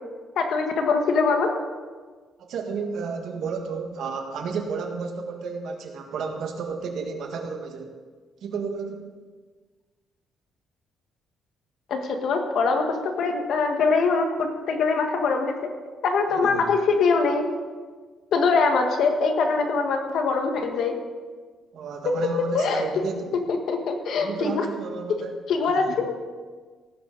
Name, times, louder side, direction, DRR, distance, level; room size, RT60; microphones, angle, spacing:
voice 1, 0.3-1.5 11.9-15.7 16.0-17.5 18.3-21.0 22.0-22.9 23.3-24.7 25.1-25.2 25.5-26.1, left 4 dB, 60° left, 4 dB, 1.7 m, -23 dB
voice 2, 2.4-7.9 8.4-9.1 16.3-16.7 21.7-23.3 24.2-25.4 25.7-26.0, right 5 dB, 65° right, 3 dB, 1.8 m, -32 dB
17.5 x 10.0 x 4.1 m, 1.4 s
cardioid pair, 150°, 0 cm